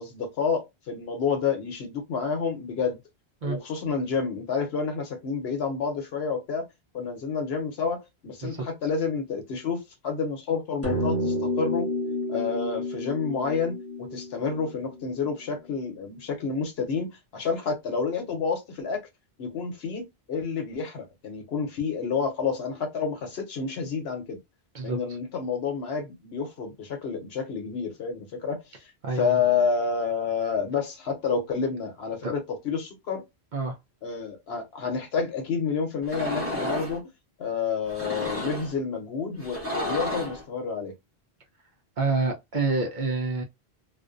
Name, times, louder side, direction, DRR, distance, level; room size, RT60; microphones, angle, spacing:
voice 1, 0.0-3.0 3.4-6.7 6.9-11.9 12.3-19.0 19.4-24.4 24.8-33.2 34.0-37.0 37.4-40.9, left 5 dB, 70° left, 1.0 m, -29 dB
sound 1, 10.8-15.5, left 1 dB, 15° left, 0.8 m, -30 dB
voice 2, 29.0-29.4 32.2-32.3 33.5-33.8 42.0-43.4, right 3 dB, 55° right, 0.6 m, -27 dB
sound 2, 36.0-37.0 37.9-38.7 39.4-40.4, left 1 dB, 15° right, 0.9 m, -31 dB
2.5 x 2.1 x 2.4 m
omnidirectional pair, 1.1 m